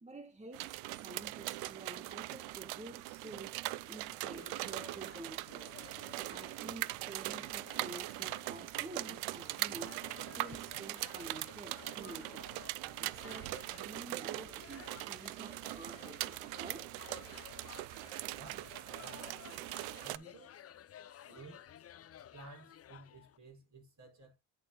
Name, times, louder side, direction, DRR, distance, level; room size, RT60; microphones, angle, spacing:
voice 1, 0.0-3.5 3.9-10.0 10.4-12.5 13.0-17.0, right 2 dB, 15° right, 1.2 m, -50 dB
sound 1, 0.5-20.2, right 19 dB, 85° right, 0.5 m, -41 dB
sound 2, 3.7-23.4, left 10 dB, 35° left, 0.5 m, -56 dB
voice 2, 18.3-19.2 20.0-20.6 21.2-21.7 22.3-24.4, right 3 dB, 40° right, 5.8 m, -54 dB
10.5 x 7.0 x 2.2 m
supercardioid pair, 60°, 44 cm